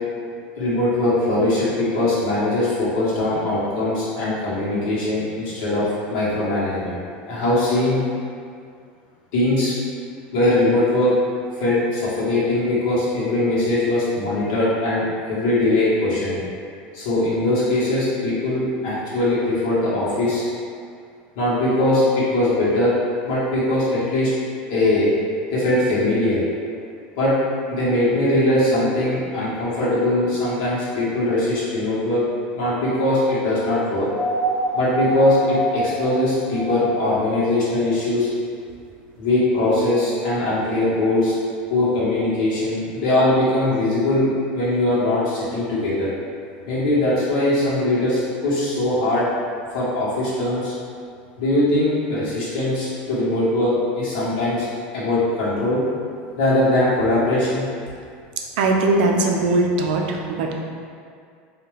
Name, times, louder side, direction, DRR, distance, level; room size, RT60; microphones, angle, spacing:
voice 1, 0.6-6.9 7.3-8.0 9.3-9.7 10.3-11.1 11.5-16.4 16.9-20.5 21.3-22.9 23.2-24.3 24.7-25.1 25.5-26.4 27.2-27.3 27.7-32.2 32.5-34.1 34.7-38.3 39.2-41.3 41.7-46.1 46.7-49.2 49.7-50.7 51.4-54.7 54.9-55.8 56.4-57.7, left 1 dB, 65° left, -9 dB, 1.5 m, -21 dB
sound 1, 34.1-37.3 38.7-38.8, equal, 10° left, 0.8 m, -26 dB
voice 2, 58.6-60.5, right 2 dB, 75° right, 1 dB, 0.5 m, -20 dB
3.7 x 2.8 x 3.2 m, 2.2 s
supercardioid pair, 180°, 5 cm